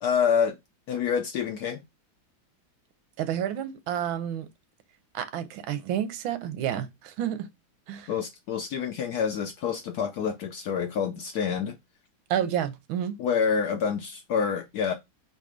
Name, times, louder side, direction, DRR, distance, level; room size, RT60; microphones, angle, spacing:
voice 1, 0.0-0.6 0.9-1.8 8.1-11.8 13.2-14.9, left 7 dB, 75° left, 0.9 m, -27 dB
voice 2, 3.2-4.5 5.1-7.5 7.9-8.1 12.3-13.2, right 10 dB, 90° right, 1.5 m, -30 dB
4.1 x 2.6 x 4.8 m
omnidirectional pair, 2.1 m